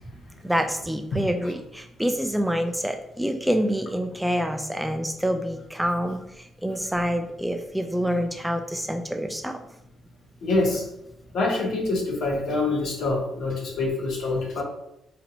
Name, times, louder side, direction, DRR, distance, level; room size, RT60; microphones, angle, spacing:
voice 1, 0.4-9.6, equal, 5° right, 6 dB, 0.3 m, -27 dB
voice 2, 10.4-10.8 11.3-14.6, left 2 dB, 70° left, 0 dB, 0.9 m, -25 dB
4.1 x 2.8 x 2.6 m, 0.83 s
cardioid pair, 90°, 0 cm